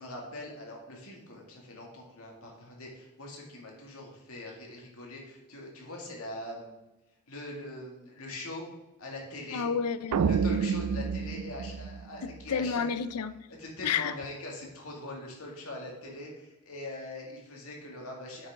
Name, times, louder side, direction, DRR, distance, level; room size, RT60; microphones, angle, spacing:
voice 1, 0.0-6.7 7.3-8.7 9.0-9.7 10.2-12.8 13.6-18.5, left 1 dB, 70° left, 2.1 m, -42 dB
voice 2, 9.5-10.2 12.2-13.5 13.8-14.1, left 6 dB, 90° left, 0.5 m, -31 dB
sound 1, 10.1-12.6, right 6 dB, 85° right, 0.4 m, -29 dB
8.3 x 6.4 x 3.6 m
head